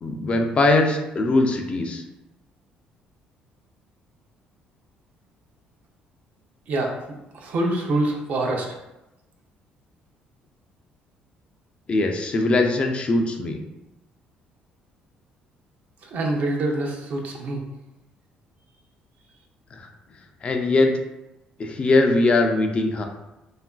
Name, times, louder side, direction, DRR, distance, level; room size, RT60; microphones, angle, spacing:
voice 1, 0.0-2.0 11.9-13.6 19.7-19.9 20.4-20.9 21.6-23.0, left 2 dB, 40° left, 4 dB, 0.4 m, -21 dB
voice 2, 7.3-8.7 16.0-17.6, right 2 dB, 60° right, 1 dB, 0.5 m, -25 dB
2.9 x 2.4 x 2.3 m, 0.94 s
cardioid pair, 90°, 3 cm